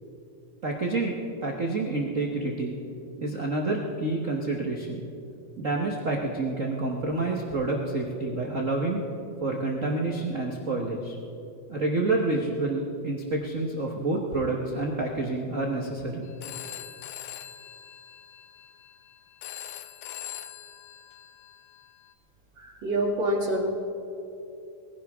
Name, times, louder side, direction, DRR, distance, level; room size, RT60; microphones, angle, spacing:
voice 1, 0.6-2.8 3.2-5.0 5.6-9.0 9.4-11.2 11.7-16.3, right 2 dB, 85° right, -1 dB, 0.7 m, -28 dB
Telephone, 16.2-22.1, left 11 dB, 75° left, 1.6 m, -43 dB
voice 2, 22.6-23.7, right 1 dB, 45° right, -1 dB, 2.4 m, -26 dB
21.5 x 15.5 x 3.6 m, 2.8 s
omnidirectional pair, 3.4 m